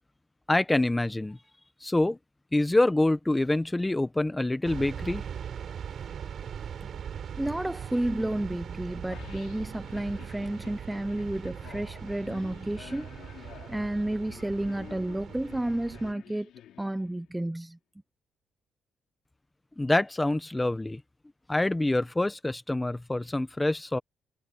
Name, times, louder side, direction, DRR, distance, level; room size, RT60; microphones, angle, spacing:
voice 1, 0.5-1.4 1.8-2.2 2.5-5.2 19.8-21.0 21.5-24.0, left 2 dB, 15° left, 1.3 m, -26 dB
sound 1, 4.6-16.1, right 8 dB, 60° right, 4.9 m, -40 dB
voice 2, 7.3-13.1 13.7-16.5 16.8-17.8, right 1 dB, 10° right, 0.8 m, -31 dB
sound 2, 9.1-17.4, left 11 dB, 80° left, 3.5 m, -50 dB
cardioid pair, 90°, 0 cm